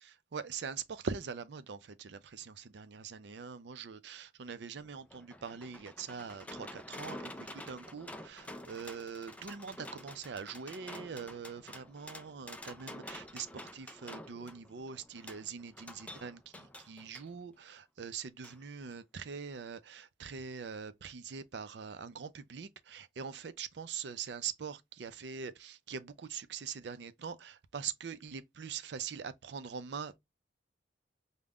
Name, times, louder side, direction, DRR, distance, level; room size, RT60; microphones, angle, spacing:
voice 1, 0.0-30.2, right 6 dB, 65° right, 0.5 m, -43 dB
sound 1, 4.7-17.3 18.4-18.6 18.9-19.0, left 1 dB, 5° left, 0.3 m, -49 dB
5.1 x 2.2 x 2.2 m
head